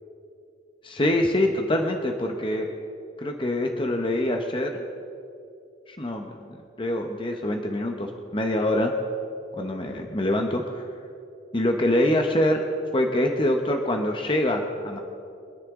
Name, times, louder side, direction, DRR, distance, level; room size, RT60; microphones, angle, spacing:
voice 1, 0.8-2.7 3.2-4.8 5.9-8.9 9.6-10.9 11.5-12.6 12.9-15.0, left 1 dB, 30° left, 3 dB, 0.9 m, -25 dB
25.0 x 10.0 x 3.7 m, 2.6 s
head